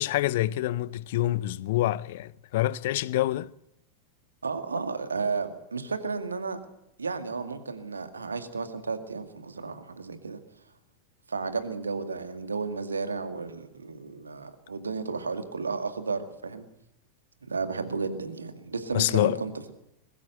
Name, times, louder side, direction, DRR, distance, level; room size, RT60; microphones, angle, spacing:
voice 1, 0.0-3.5 18.9-19.4, left 15 dB, 55° left, 0.7 m, -26 dB
voice 2, 4.4-6.6 7.0-10.4 11.3-16.7 17.5-19.7, right 4 dB, 75° right, 2.1 m, -33 dB
21.5 x 15.5 x 7.9 m
figure-of-eight pair, 90°, 0 cm